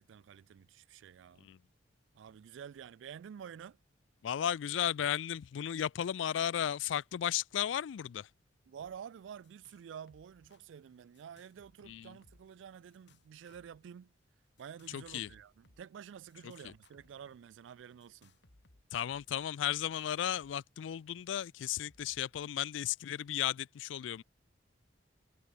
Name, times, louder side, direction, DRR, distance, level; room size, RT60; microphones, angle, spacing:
voice 1, 0.0-1.5 2.1-3.8 8.7-14.1 14.6-18.3, right 8 dB, 80° right, 0.3 m, -50 dB
voice 2, 4.2-8.3 11.8-12.2 14.9-15.3 16.4-16.7 18.9-24.2, left 10 dB, 85° left, 0.3 m, -35 dB
sound 1, 8.8-9.0 9.2-9.8 10.1-10.6 11.1-12.5 12.9-13.8 14.6-15.8 16.3-17.4 18.0-20.5 20.8-20.9 21.4-22.5, left 2 dB, 65° left, 2.1 m, -66 dB
head